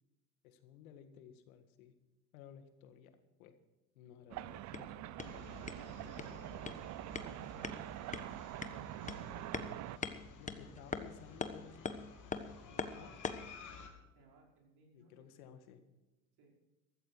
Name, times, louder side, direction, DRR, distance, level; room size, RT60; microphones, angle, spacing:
voice 1, 0.4-1.9 2.3-3.6 4.0-5.4 6.3-6.8 7.2-7.9 8.9-9.8 10.4-11.8 13.0-13.1 14.9-15.8, left 8 dB, 80° left, 9 dB, 1.9 m, -57 dB
sound 1, 4.3-10.0, right 17 dB, 45° right, 0.5 m, -45 dB
sound 2, 4.5-13.6, left 4 dB, 15° left, 1.3 m, -45 dB
sound 3, 5.2-13.9, left 5 dB, 45° left, 3.1 m, -55 dB
voice 2, 9.6-11.3 12.5-13.2 14.1-15.2 16.4-16.6, right 3 dB, 65° right, 0 dB, 5.6 m, -65 dB
15.0 x 14.0 x 4.8 m, 1.1 s
supercardioid pair, 85°, 42 cm